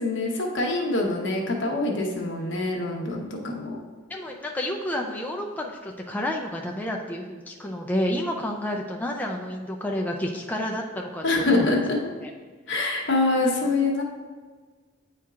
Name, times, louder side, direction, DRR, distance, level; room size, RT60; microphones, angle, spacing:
voice 1, 0.0-3.8 11.2-12.0 12.7-14.0, left 2 dB, 70° left, 0 dB, 1.0 m, -25 dB
voice 2, 4.1-11.8 12.2-12.3, left 1 dB, 10° left, 0 dB, 0.4 m, -30 dB
9.2 x 4.4 x 2.4 m, 1.4 s
head